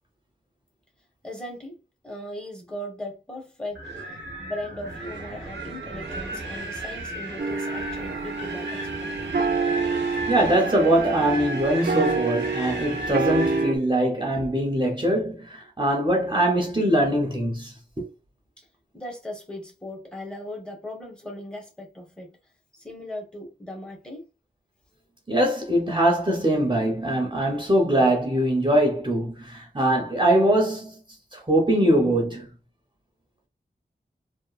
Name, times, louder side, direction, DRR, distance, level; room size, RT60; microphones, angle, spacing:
voice 1, 1.2-1.8 2.0-3.8 4.4-9.2 18.9-22.4 22.8-24.3, left 1 dB, 5° left, 1.1 m, -38 dB
Wind, 3.8-13.7, right 1 dB, 80° right, 0.9 m, -35 dB
sound 1, 7.4-13.7, right 4 dB, 55° right, 0.4 m, -27 dB
voice 2, 10.3-18.1 25.3-31.0 31.3-32.5, right 1 dB, 25° right, 0.8 m, -22 dB
2.9 x 2.1 x 2.4 m
wide cardioid pair, 65°, 19 cm